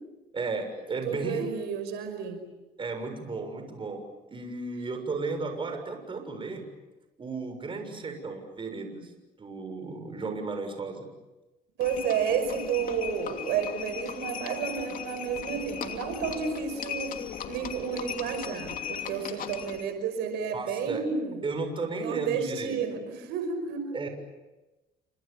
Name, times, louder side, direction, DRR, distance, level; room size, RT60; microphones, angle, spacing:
voice 1, 0.3-1.5 2.8-6.7 7.2-9.1 9.4-11.1 20.5-21.0 21.4-22.8 23.9-24.1, right 3 dB, 30° right, 6 dB, 6.9 m, -34 dB
voice 2, 1.0-2.4 11.8-17.1 17.5-21.4 22.0-23.8, right 6 dB, 90° right, 7 dB, 5.5 m, -31 dB
Livestock farm animals working animals, 11.8-19.9, left 8 dB, 55° left, 2.8 m, -38 dB
30.0 x 26.5 x 7.3 m, 1.1 s
cardioid pair, 110°, 17 cm